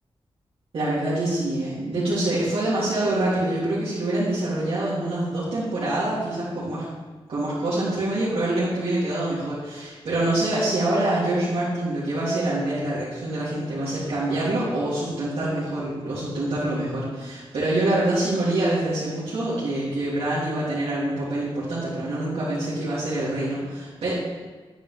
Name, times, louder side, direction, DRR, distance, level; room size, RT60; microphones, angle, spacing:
voice 1, 0.7-6.9 7.3-24.1, right 1 dB, 75° right, -11 dB, 3.4 m, -25 dB
10.0 x 9.8 x 3.6 m, 1.3 s
wide cardioid pair, 170°, 10 cm